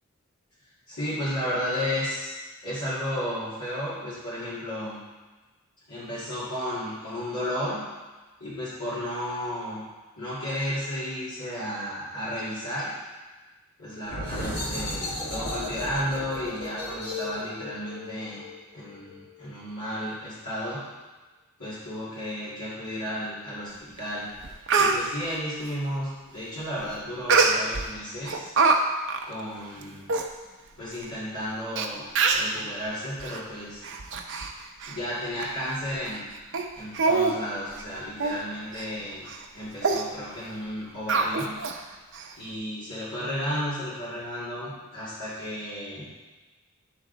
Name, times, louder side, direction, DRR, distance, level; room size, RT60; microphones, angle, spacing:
voice 1, 0.9-2.3 2.6-5.0 5.9-7.8 8.4-9.8 10.2-12.9 13.8-18.4 18.7-20.8 21.6-24.3 24.8-28.5 29.2-30.1 30.8-32.1 32.3-33.8 34.9-36.3 36.8-39.3 39.5-41.6 42.4-46.1, equal, 75° left, -13 dB, 2.2 m, -33 dB
sound 1, 14.0-19.4, left 1 dB, 45° left, 1.6 m, -35 dB
Speech, 24.0-24.1 24.4-25.0 27.3-27.8 28.3-28.8 29.1-29.2 29.8-29.9 30.1-30.3 31.0-31.1 31.8-31.9 32.1-32.5 33.2-33.4 33.8-34.5 34.8-35.0 35.4-35.5 36.0-36.2 36.5-36.6 36.9-37.3 37.7-37.8 38.2-38.4 38.7-38.9 39.3-39.4 39.8-40.0 41.1-41.8 42.1-42.2, right 4 dB, 55° right, 0.6 m, -24 dB
9.1 x 3.6 x 3.9 m, 1.2 s
head